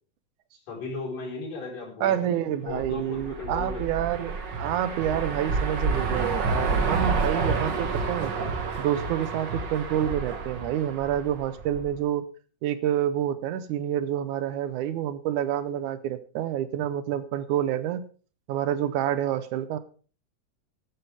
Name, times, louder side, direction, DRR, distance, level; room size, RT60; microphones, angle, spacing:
voice 1, 0.5-4.2, left 4 dB, 75° left, -3 dB, 5.9 m, -36 dB
voice 2, 2.0-8.3 8.8-12.3 12.6-18.1 18.5-19.8, right 11 dB, 75° right, 13 dB, 2.1 m, -28 dB
sound 1, 2.7-11.9, right 4 dB, 45° right, 1.6 m, -29 dB
13.5 x 12.5 x 3.5 m, 0.39 s
omnidirectional pair, 3.8 m